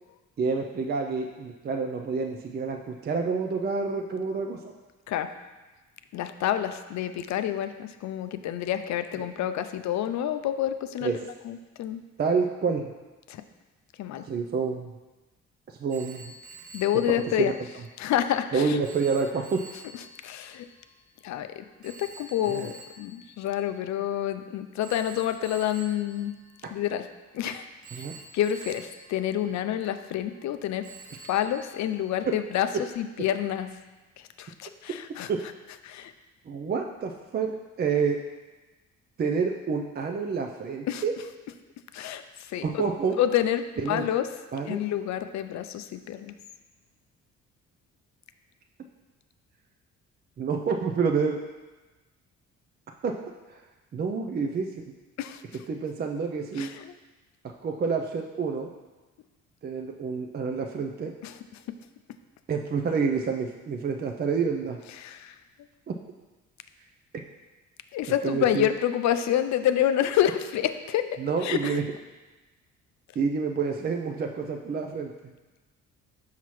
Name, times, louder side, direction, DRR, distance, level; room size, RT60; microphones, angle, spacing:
voice 1, 0.4-4.7 11.0-11.2 12.2-12.9 14.3-14.9 15.8-16.3 17.4-17.5 18.5-19.7 22.5-22.7 26.6-26.7 27.9-28.1 35.3-35.4 36.5-37.5 37.8-38.2 39.2-41.1 42.6-43.2 43.8-44.0 44.5-44.8 50.4-51.4 53.0-53.2 53.5-53.6 53.9-54.8 55.7-56.7 57.6-58.7 59.6-61.1 62.5-64.8 65.9-66.0 68.2-68.7 71.2-71.8 73.2-75.3, right 5 dB, 35° right, 3 dB, 0.4 m, -28 dB
voice 2, 6.1-11.2 11.4-12.0 13.3-13.4 14.0-14.2 16.7-17.5 18.0-18.8 20.2-20.7 21.2-26.3 26.7-27.1 27.3-27.7 27.9-28.0 28.3-30.9 31.3-32.7 33.0-33.7 34.2-35.3 35.8-36.1 40.9-41.0 41.9-42.8 43.2-44.3 44.7-46.3 55.2-55.4 56.6-56.9 61.2-61.4 65.0-65.4 67.9-71.8, left 11 dB, 65° left, 10 dB, 0.5 m, -28 dB
Telephone, 15.9-24.3 24.8-27.3 27.8-30.5 30.8-32.6, right 3 dB, 75° right, 0.7 m, -49 dB
5.8 x 5.6 x 3.1 m, 1.2 s
cardioid pair, 90°, 30 cm